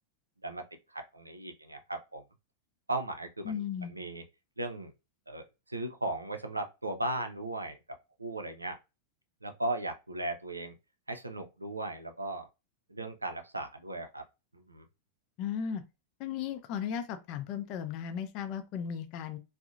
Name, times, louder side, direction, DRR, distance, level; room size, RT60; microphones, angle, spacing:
voice 1, 0.4-2.2 2.9-3.6 3.8-4.2 4.6-4.9 5.3-7.8 8.2-8.8 9.4-10.7 11.1-12.5 12.9-14.2 14.5-14.8, right 2 dB, 85° right, 0.4 m, -37 dB
voice 2, 3.4-3.9 15.4-15.8 16.2-19.4, left 8 dB, 40° left, 0.4 m, -36 dB
2.7 x 2.0 x 2.4 m
figure-of-eight pair, 90°, 0 cm